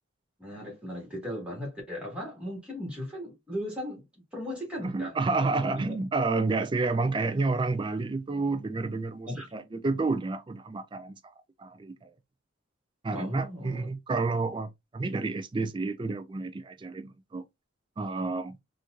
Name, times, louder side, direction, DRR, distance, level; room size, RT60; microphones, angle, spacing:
voice 1, 0.4-4.0 4.3-5.1 5.4-6.0 9.3-9.5 13.1-13.9, equal, 5° right, 1.6 m, -37 dB
voice 2, 4.8-11.1 11.6-12.1 13.0-17.4 18.0-18.6, right 3 dB, 25° right, 0.3 m, -30 dB
4.4 x 2.5 x 2.4 m
head